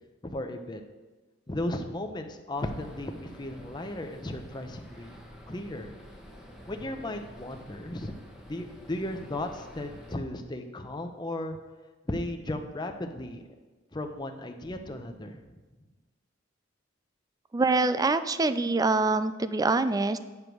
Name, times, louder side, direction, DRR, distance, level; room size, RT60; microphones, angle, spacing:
voice 1, 0.3-0.8 1.5-5.2 5.5-5.9 6.7-8.1 8.5-11.6 12.1-13.4 13.9-15.4, left 1 dB, 25° left, 5 dB, 0.7 m, -35 dB
sound 1, 2.6-10.2, equal, 5° right, 1.2 m, -49 dB
voice 2, 17.5-20.2, right 3 dB, 20° right, 13 dB, 0.4 m, -25 dB
9.5 x 5.2 x 6.1 m, 1.2 s
head